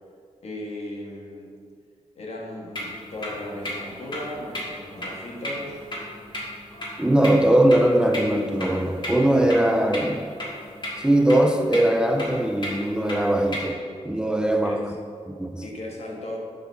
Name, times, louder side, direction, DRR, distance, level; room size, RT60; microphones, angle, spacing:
voice 1, 0.4-1.5 2.1-5.8 14.6-14.9 15.6-16.4, left 1 dB, 65° left, 1.5 m, -36 dB
sound 1, 2.8-13.7, left 1 dB, 40° left, 1.8 m, -36 dB
voice 2, 7.0-10.2 11.0-13.8 14.1-14.8 15.3-15.6, right 1 dB, 5° right, 0.4 m, -20 dB
11.5 x 4.0 x 4.1 m
wide cardioid pair, 115°, 12 cm